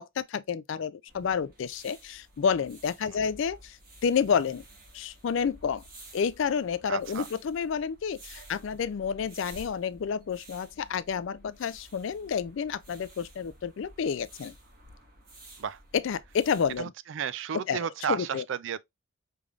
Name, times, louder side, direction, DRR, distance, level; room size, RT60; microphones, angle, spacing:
voice 1, 0.0-4.6 4.9-5.8 6.1-14.5 15.9-16.9 17.7-17.8 18.1-18.4, left 6 dB, 60° left, 0.3 m, -30 dB
sound 1, 1.1-16.8, right 1 dB, 40° right, 1.7 m, -52 dB
voice 2, 6.9-7.3 8.4-8.5 15.6-15.8 16.8-18.8, right 8 dB, 60° right, 0.3 m, -33 dB
5.1 x 3.4 x 2.4 m
head